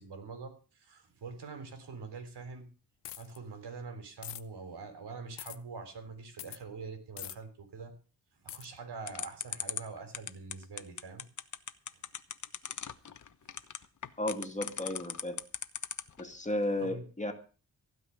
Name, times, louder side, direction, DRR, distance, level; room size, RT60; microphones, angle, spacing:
voice 1, 0.0-2.7 3.2-7.9 8.4-11.2 13.4-13.5 16.8-17.0, right 4 dB, 80° right, 7 dB, 3.8 m, -44 dB
sound 1, 3.0-3.4 4.2-4.4 5.4-5.6 6.4-6.6 7.2-7.4 8.5-8.7, left 12 dB, 90° left, 1.0 m, -42 dB
sound 2, 9.1-16.2, left 7 dB, 45° left, 1.1 m, -37 dB
voice 2, 14.2-15.4 16.2-17.3, left 1 dB, 20° left, 5 dB, 2.3 m, -34 dB
16.0 x 5.4 x 10.0 m, 0.38 s
cardioid pair, 90°, 40 cm